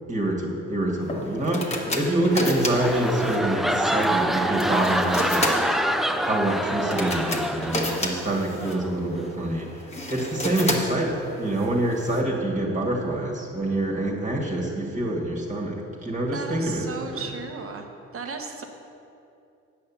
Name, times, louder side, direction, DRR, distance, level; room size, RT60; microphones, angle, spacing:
voice 1, 0.1-17.2, right 1 dB, 25° right, -2 dB, 1.9 m, -26 dB
sound 1, 1.0-12.2, left 1 dB, 20° left, 1.4 m, -32 dB
voice 2, 2.0-2.5 16.3-17.9 18.1-18.6, right 4 dB, 45° right, 4 dB, 1.2 m, -35 dB
sound 2, 2.3-8.2 8.6-8.9, right 1 dB, ahead, 0.3 m, -26 dB
9.0 x 5.8 x 7.2 m, 2.6 s
cardioid pair, 90°, 30 cm